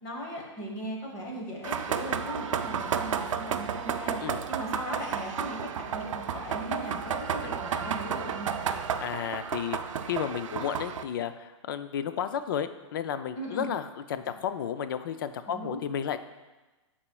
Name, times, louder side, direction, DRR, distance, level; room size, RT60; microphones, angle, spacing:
voice 1, 0.0-4.2 4.5-8.6 13.4-13.7 15.5-15.8, equal, 25° left, -1 dB, 1.2 m, -38 dB
sound 1, 1.6-11.0, right 7 dB, 85° right, 0.5 m, -32 dB
voice 2, 9.0-16.2, left 8 dB, 45° left, 11 dB, 0.4 m, -33 dB
11.0 x 4.3 x 2.3 m, 1.2 s
hypercardioid pair, 165°, 16 cm